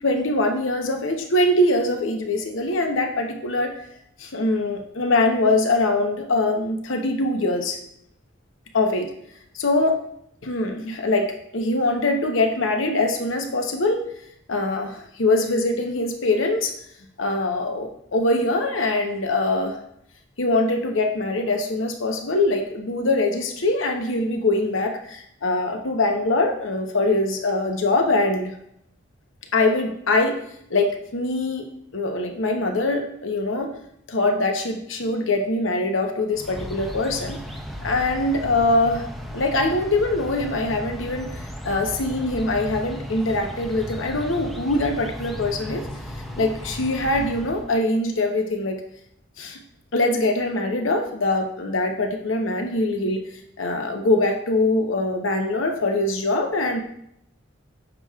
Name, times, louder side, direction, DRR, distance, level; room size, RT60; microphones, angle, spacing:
voice 1, 0.0-3.7 4.2-7.8 8.7-9.1 9.5-10.0 10.4-14.0 14.5-16.7 17.2-19.8 20.4-28.5 29.5-30.4 30.7-31.6 31.9-33.7 34.1-37.4 37.8-39.1 39.3-45.8 46.4-48.8 49.4-49.6 49.9-53.2 53.6-56.8, left 2 dB, 90° left, 4 dB, 0.9 m, -23 dB
sound 1, 36.3-47.7, equal, ahead, 0.5 m, -35 dB
8.9 x 6.0 x 2.4 m, 0.73 s
head